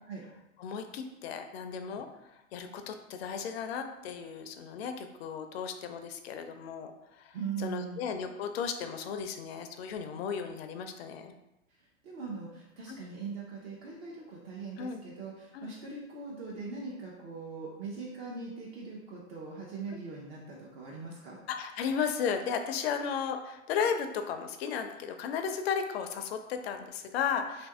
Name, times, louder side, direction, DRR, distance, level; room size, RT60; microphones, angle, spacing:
voice 1, 0.6-11.3 12.9-13.0 14.8-15.0 15.5-15.7 21.5-27.7, left 7 dB, 50° left, 7 dB, 0.4 m, -35 dB
voice 2, 7.3-8.0 12.0-21.4, right 5 dB, 45° right, -4 dB, 0.7 m, -41 dB
2.8 x 2.6 x 3.5 m, 0.93 s
hypercardioid pair, 110°, 40 cm